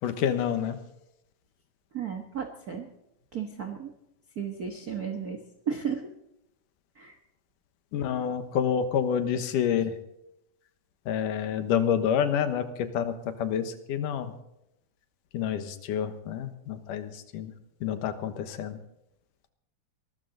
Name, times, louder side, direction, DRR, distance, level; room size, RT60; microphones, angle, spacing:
voice 1, 0.0-0.8 7.9-9.9 11.1-14.3 15.3-17.5 17.8-18.8, left 8 dB, 85° left, 9 dB, 2.7 m, -28 dB
voice 2, 1.9-2.9 3.3-3.9 4.4-6.1 7.0-7.2, right 7 dB, 60° right, 4 dB, 0.9 m, -34 dB
22.5 x 13.0 x 3.9 m, 0.84 s
omnidirectional pair, 3.7 m